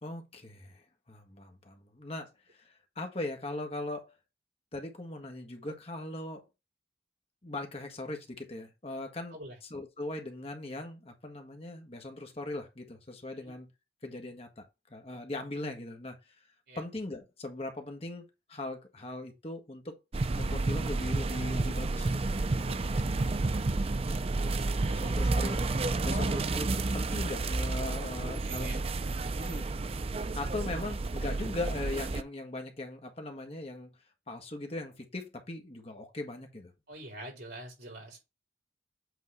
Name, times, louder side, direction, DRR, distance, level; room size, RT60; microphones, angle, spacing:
voice 1, 0.0-4.0 4.7-6.4 7.4-9.4 9.7-13.7 14.0-14.6 14.9-16.2 16.7-20.0 20.3-22.3 22.6-23.3 24.9-25.6 26.0-28.8 29.4-29.7 30.3-33.9 34.3-36.7, left 2 dB, 35° left, 1.5 m, -39 dB
sound 1, 20.1-32.2, right 3 dB, 35° right, 0.5 m, -31 dB
voice 2, 24.3-25.2 26.0-26.4 27.8-28.1 28.4-28.8 36.9-38.2, right 1 dB, 70° right, 4.5 m, -45 dB
8.3 x 3.7 x 4.8 m
head